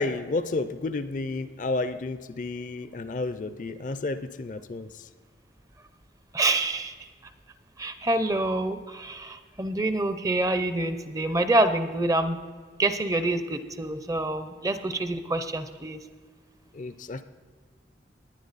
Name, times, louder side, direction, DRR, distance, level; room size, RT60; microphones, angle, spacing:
voice 1, 0.0-5.1 16.7-17.2, left 3 dB, 45° left, 12 dB, 0.5 m, -31 dB
voice 2, 6.3-6.9 7.8-12.4 12.8-16.0, right 2 dB, 20° right, 10 dB, 0.5 m, -26 dB
20.0 x 10.0 x 4.1 m, 1.5 s
head